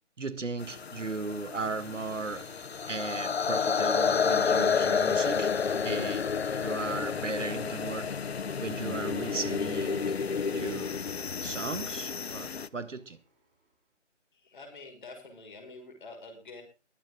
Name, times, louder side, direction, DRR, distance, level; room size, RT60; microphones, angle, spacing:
voice 1, 0.2-2.5 2.9-5.5 5.8-6.2 6.6-8.1 8.6-10.1 10.5-11.0 11.4-13.2, right 3 dB, 80° right, 1.8 m, -36 dB
sound 1, 0.6-12.7, left 6 dB, 55° left, 0.7 m, -30 dB
sound 2, 0.7-13.7, right 2 dB, 45° right, 6.7 m, -57 dB
voice 2, 14.3-16.6, left 3 dB, 40° left, 6.0 m, -47 dB
22.5 x 8.1 x 3.9 m
figure-of-eight pair, 165°, 37 cm